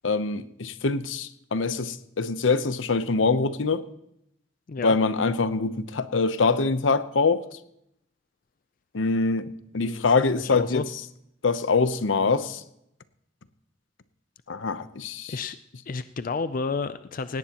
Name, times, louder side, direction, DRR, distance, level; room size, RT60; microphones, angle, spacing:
voice 1, 0.0-3.9 4.8-7.6 8.9-10.8 11.4-12.6 14.5-15.4, left 4 dB, 80° left, 13 dB, 0.8 m, -24 dB
voice 2, 10.4-10.8 15.3-15.6 15.9-17.4, left 4 dB, 45° left, 12 dB, 0.4 m, -31 dB
18.0 x 17.0 x 2.9 m, 0.77 s
head